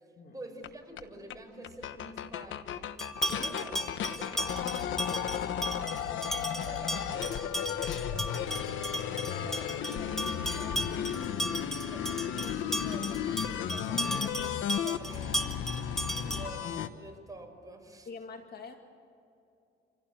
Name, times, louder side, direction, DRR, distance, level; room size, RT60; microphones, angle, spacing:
voice 1, 0.0-2.9 3.3-3.8 4.1-8.6 11.6-15.5 16.2-16.7 17.0-18.1, right 2 dB, 15° right, 3 dB, 5.4 m, -48 dB
sound 1, 0.6-0.7 1.0-1.1 1.3-1.4 1.6-16.9, left 9 dB, 75° left, 1.2 m, -34 dB
sound 2, 3.0-16.7, equal, ahead, 1.8 m, -36 dB
voice 2, 3.2-3.9 9.0-11.7 16.1-16.4 18.1-18.8, left 4 dB, 55° left, 4 dB, 2.4 m, -46 dB
26.5 x 16.5 x 9.0 m, 2.6 s
cardioid pair, 90°, 20 cm